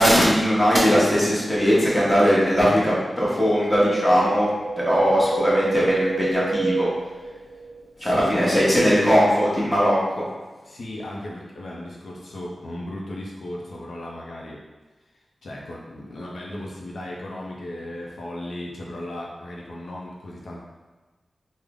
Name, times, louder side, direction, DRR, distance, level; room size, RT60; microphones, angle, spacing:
voice 1, 0.0-4.5 4.8-6.9 8.0-10.2, equal, 5° left, -7 dB, 1.0 m, -19 dB
Wind, 3.5-7.8 8.1-8.2, right 3 dB, 70° right, 0.3 m, -28 dB
voice 2, 8.0-8.3 10.6-14.6 15.4-20.6, left 1 dB, 70° left, -3 dB, 0.5 m, -36 dB
3.6 x 2.0 x 3.5 m, 1.3 s
wide cardioid pair, 130°, 0 cm